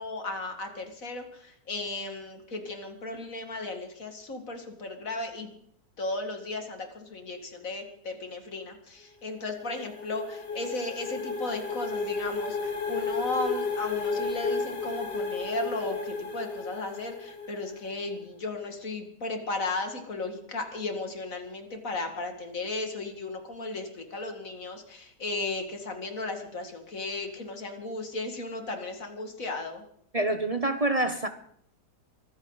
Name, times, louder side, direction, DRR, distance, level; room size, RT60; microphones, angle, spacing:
voice 1, 0.0-5.5 6.0-29.9, left 2 dB, 50° left, 2.6 m, -35 dB
sound 1, 9.2-17.9, left 4 dB, 75° left, 2.9 m, -33 dB
voice 2, 30.1-31.3, right 2 dB, 35° right, 0.6 m, -26 dB
24.0 x 14.0 x 4.0 m
omnidirectional pair, 1.9 m